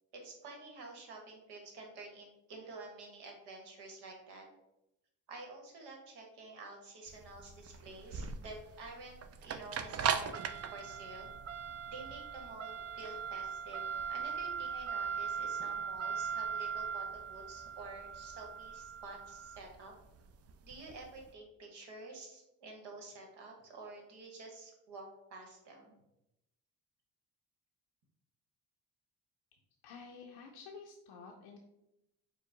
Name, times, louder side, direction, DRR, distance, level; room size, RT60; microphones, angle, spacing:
voice 1, 0.1-4.4 5.3-11.3 11.9-19.9 20.6-26.0, right 2 dB, 80° right, 1 dB, 1.2 m, -50 dB
sound 1, 7.1-21.2, right 7 dB, 40° right, 0.4 m, -39 dB
voice 2, 29.8-31.6, left 5 dB, 85° left, 0 dB, 0.6 m, -51 dB
4.6 x 2.1 x 3.7 m, 0.88 s
supercardioid pair, 70°, 40 cm